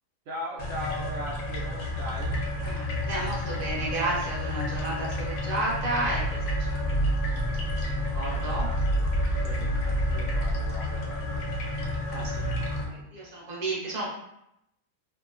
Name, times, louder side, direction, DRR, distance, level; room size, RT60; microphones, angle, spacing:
voice 1, 0.3-2.4 8.3-11.4, equal, 85° right, -4 dB, 0.6 m, -40 dB
sound 1, 0.6-12.8, equal, 70° left, 0.8 m, -29 dB
voice 2, 2.6-8.7 9.3-9.6 12.1-14.1, right 1 dB, 45° right, -5 dB, 0.7 m, -33 dB
2.8 x 2.1 x 2.4 m, 0.80 s
omnidirectional pair, 1.8 m